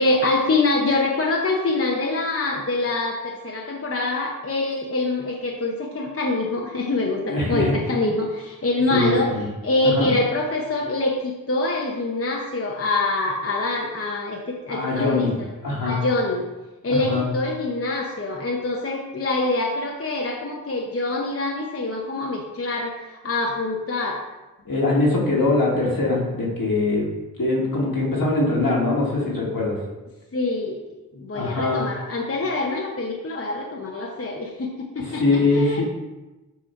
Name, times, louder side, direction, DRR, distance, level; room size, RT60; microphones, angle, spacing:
voice 1, 0.0-9.3 9.6-15.5 15.8-16.5 16.8-24.2 30.3-30.8 31.1-35.8, left 2 dB, 40° left, -1 dB, 0.8 m, -25 dB
voice 2, 7.3-7.7 8.9-9.5 9.8-10.1 14.7-15.3 15.6-16.0 16.9-17.3 24.6-27.0 27.4-29.8 31.3-31.8 35.0-35.8, left 2 dB, 70° left, -3 dB, 1.8 m, -22 dB
6.4 x 3.2 x 5.6 m, 1.1 s
wide cardioid pair, 55°, 35 cm